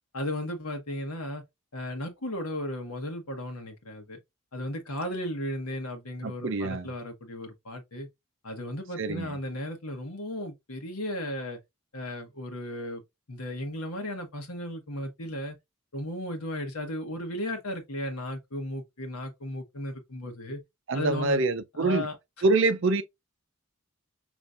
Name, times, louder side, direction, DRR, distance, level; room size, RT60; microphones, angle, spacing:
voice 1, 0.1-1.4 1.7-4.2 4.5-8.1 8.4-11.6 11.9-13.0 13.3-15.6 15.9-20.6 20.9-21.4 21.8-22.1, left 1 dB, 90° left, 1.3 m, -35 dB
voice 2, 6.2-6.9 9.0-9.4 20.9-22.1 22.4-23.0, right 3 dB, 60° right, 0.5 m, -25 dB
5.3 x 3.1 x 2.4 m
head